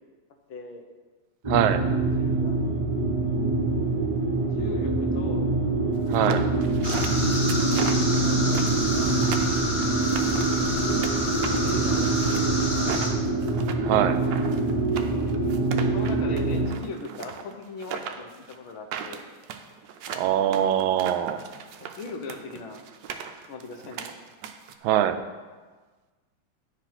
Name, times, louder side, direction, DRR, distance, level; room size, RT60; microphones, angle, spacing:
voice 1, 0.5-0.8 2.2-2.7 4.4-5.5 7.6-9.2 9.5-10.8 11.2-12.9 15.9-19.2 21.8-22.8 23.5-24.1, left 4 dB, 90° left, 4 dB, 1.8 m, -40 dB
sound 1, 1.4-16.7, right 3 dB, 55° right, 0.3 m, -25 dB
voice 2, 1.5-1.8 6.1-6.5 13.8-14.2 20.2-21.4 24.8-25.2, right 11 dB, 90° right, 10 dB, 1.4 m, -23 dB
sound 2, 6.1-11.1 11.4-24.7, right 7 dB, 75° right, 1.3 m, -38 dB
sound 3, 6.8-13.1, left 1 dB, 45° left, 2.1 m, -30 dB
10.5 x 5.0 x 5.7 m, 1.4 s
omnidirectional pair, 2.1 m